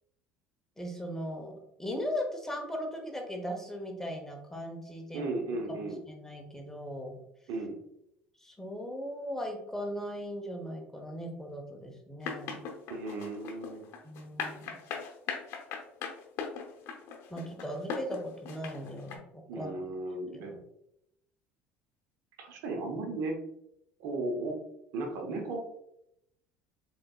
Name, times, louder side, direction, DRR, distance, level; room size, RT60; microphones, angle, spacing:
voice 1, 0.8-1.5 1.8-5.3 5.7-7.1 8.4-12.6 14.0-14.8 17.3-19.7 20.4-20.6, equal, 10° left, 2 dB, 0.9 m, -38 dB
voice 2, 5.1-6.0 7.5-7.8 12.9-13.8 19.5-20.5 22.4-23.4 24.0-24.6 24.9-25.6, right 2 dB, 65° right, 3 dB, 0.9 m, -35 dB
sound 1, 12.2-19.2, left 6 dB, 55° left, 0.8 m, -38 dB
4.0 x 3.8 x 2.3 m, 0.78 s
hypercardioid pair, 80°, 6 cm